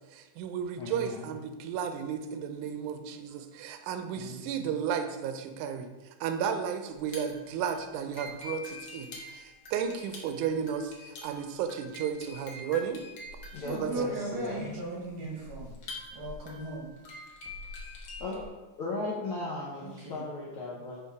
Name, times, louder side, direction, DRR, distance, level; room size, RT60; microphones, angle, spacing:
voice 1, 0.0-5.9 6.2-13.0 13.7-13.9 15.2-15.4, right 7 dB, 85° right, 8 dB, 2.1 m, -33 dB
voice 2, 0.8-1.3 4.1-4.7 13.5-14.7 18.2-18.5 18.8-21.0, left 2 dB, 80° left, -4 dB, 1.2 m, -37 dB
sound 1, 6.9-18.5, left 2 dB, 65° left, 1.2 m, -45 dB
voice 3, 13.5-15.8 16.1-16.9 19.8-20.2, right 2 dB, 60° right, -3 dB, 1.4 m, -37 dB
7.0 x 3.4 x 4.7 m, 1.2 s
omnidirectional pair, 3.5 m